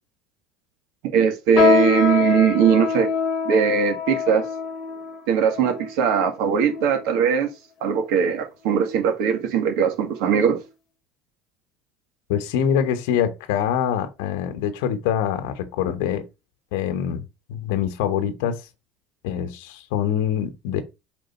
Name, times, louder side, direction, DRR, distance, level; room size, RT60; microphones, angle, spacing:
voice 1, 1.1-3.1 3.5-4.4 5.3-7.5 7.8-10.6, right 7 dB, 70° right, 1.9 m, -20 dB
sound 1, 1.6-7.2 7.9-8.0 8.8-9.1 9.5-9.6 10.3-10.4, left 6 dB, 45° left, 1.1 m, -25 dB
voice 2, 12.3-16.2 16.7-17.2 17.5-18.6 19.2-20.8, left 9 dB, 80° left, 1.0 m, -24 dB
5.1 x 3.9 x 5.3 m
cardioid pair, 150°, 0 cm